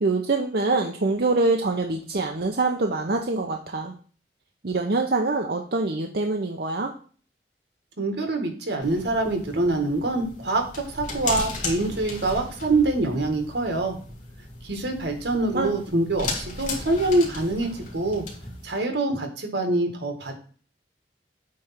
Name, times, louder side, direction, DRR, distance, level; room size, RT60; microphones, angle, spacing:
voice 1, 0.0-3.9 4.6-6.9 15.5-15.7, right 3 dB, 60° right, 2 dB, 0.8 m, -24 dB
voice 2, 8.0-14.0 14.6-18.2 18.6-20.4, right 2 dB, 80° right, 4 dB, 1.8 m, -25 dB
sound 1, 8.8-18.7, left 3 dB, 45° left, 2.7 m, -36 dB
8.5 x 3.3 x 5.8 m, 0.42 s
head